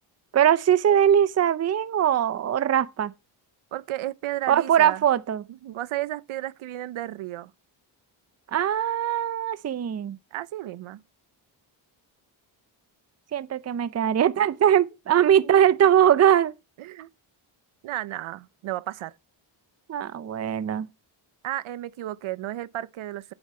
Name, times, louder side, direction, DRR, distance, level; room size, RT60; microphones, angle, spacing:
voice 1, 0.3-3.1 4.5-5.4 8.5-10.2 13.3-16.5 19.9-20.9, right 9 dB, 35° right, 0.6 m, -21 dB
voice 2, 3.7-5.0 5.5-7.5 10.3-11.0 15.4-15.5 16.8-17.1 17.8-19.1 21.4-23.3, right 14 dB, 75° right, 0.7 m, -33 dB
8.9 x 7.2 x 4.3 m
cardioid pair, 90°, 49 cm